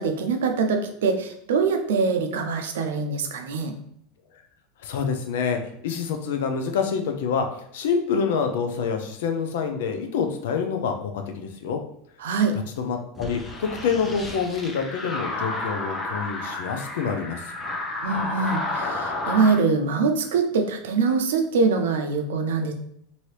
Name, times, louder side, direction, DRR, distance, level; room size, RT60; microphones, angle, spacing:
voice 1, 0.0-3.7 12.2-12.6 18.0-22.7, right 4 dB, 80° right, 5 dB, 0.5 m, -23 dB
voice 2, 4.8-7.5 7.7-11.8 12.8-17.4, left 6 dB, 75° left, 5 dB, 0.5 m, -27 dB
sound 1, 13.2-19.6, left 2 dB, 20° left, 0.7 m, -31 dB
2.8 x 2.7 x 3.1 m, 0.70 s
hypercardioid pair, 100°, 0 cm